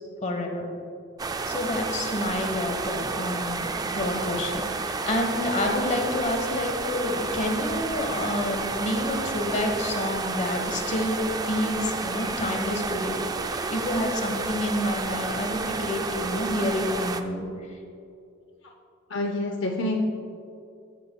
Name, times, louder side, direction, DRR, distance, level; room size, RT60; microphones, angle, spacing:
voice 1, 0.2-0.6 1.5-11.2 11.4-13.2 13.5-17.5, left 1 dB, 35° left, 3 dB, 1.1 m, -28 dB
sound 1, 1.2-17.2, right 4 dB, 20° right, 0.3 m, -31 dB
voice 2, 19.1-20.0, left 1 dB, 65° left, 2 dB, 0.6 m, -27 dB
14.5 x 8.4 x 2.2 m, 2.5 s
head